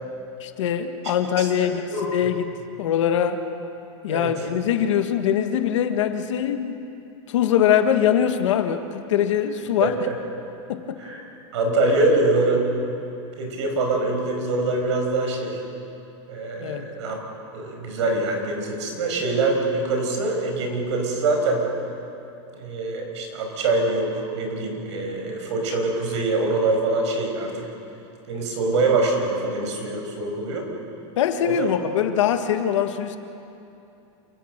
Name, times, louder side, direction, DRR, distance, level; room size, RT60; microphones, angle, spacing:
voice 1, 0.4-1.8 2.1-2.5 2.8-3.4 4.0-6.8 7.3-10.0 10.7-11.0 16.6-16.9 31.2-33.2, left 9 dB, 80° left, 7 dB, 1.7 m, -22 dB
voice 2, 1.4-2.1 4.1-4.3 9.8-9.9 11.0-11.2 11.5-12.7 13.4-15.6 16.3-17.2 17.5-21.6 22.6-27.7 28.3-30.7 31.4-31.7, right 2 dB, 70° right, 2 dB, 5.6 m, -24 dB
28.0 x 16.0 x 6.7 m, 2.8 s
supercardioid pair, 180°, 16 cm